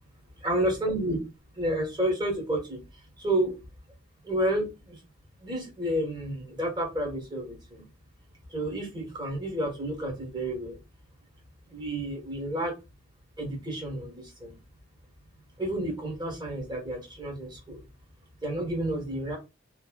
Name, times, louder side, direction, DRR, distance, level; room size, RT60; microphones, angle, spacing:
voice 1, 0.4-1.2 1.6-2.8 3.2-3.6 4.2-5.0 5.4-7.8 8.5-10.8 11.7-12.7 13.4-14.1 14.4-14.6 15.6-17.8 18.4-19.4, right 1 dB, 20° right, 0 dB, 1.2 m, -30 dB
3.1 x 2.7 x 2.3 m, 0.26 s
head